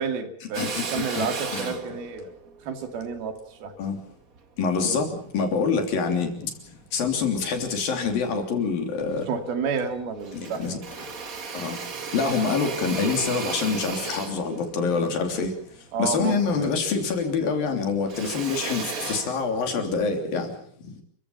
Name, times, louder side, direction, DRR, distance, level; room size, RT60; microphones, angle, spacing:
voice 1, 0.0-2.3 2.6-3.7 9.3-10.8 15.9-16.7, right 5 dB, 85° right, 7 dB, 4.3 m, -30 dB
Drill, 0.5-5.1 5.6-6.8 7.3-8.2 8.6-8.7 8.9-9.9 10.2-16.9 17.2-20.0, right 5 dB, 50° right, 1.0 m, -36 dB
voice 2, 0.6-1.3 1.5-1.7 3.8-4.0 4.6-6.5 6.9-9.3 10.3-10.8 11.5-11.8 12.1-15.5 16.0-20.5, left 5 dB, 70° left, 4 dB, 4.9 m, -26 dB
30.0 x 15.0 x 7.3 m, 0.64 s
omnidirectional pair, 4.2 m